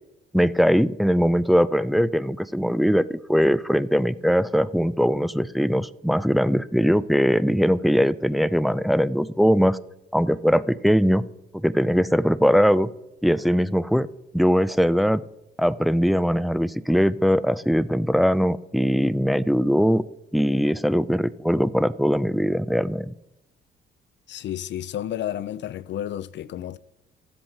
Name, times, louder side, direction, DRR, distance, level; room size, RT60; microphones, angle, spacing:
voice 1, 0.3-9.8 10.1-11.2 11.5-12.9 13.2-14.1 14.3-15.2 15.6-20.0 20.3-23.1, equal, ahead, 0.4 m, -21 dB
voice 2, 24.3-26.8, left 11 dB, 65° left, 0.5 m, -31 dB
12.5 x 7.9 x 4.4 m
cardioid pair, 90°, 20 cm